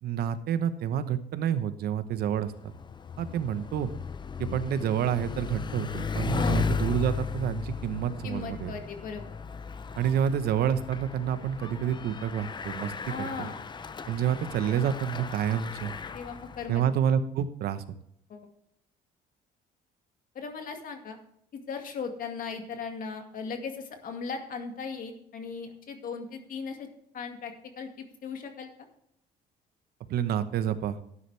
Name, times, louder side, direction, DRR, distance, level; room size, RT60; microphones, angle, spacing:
voice 1, 0.0-2.7 3.2-3.9 4.4-8.7 10.0-12.9 13.2-13.3 14.1-15.9 16.7-17.8 30.1-31.0, right 9 dB, 70° right, 11 dB, 1.0 m, -28 dB
Bicycle, 2.2-16.8, left 5 dB, 25° left, 0.7 m, -35 dB
voice 2, 8.2-9.3 13.0-13.6 16.1-16.8 18.3-18.5 20.3-21.2 21.5-26.9 27.1-28.9, left 5 dB, 55° left, 5 dB, 2.1 m, -38 dB
12.5 x 10.0 x 3.4 m, 0.72 s
cardioid pair, 110°, 17 cm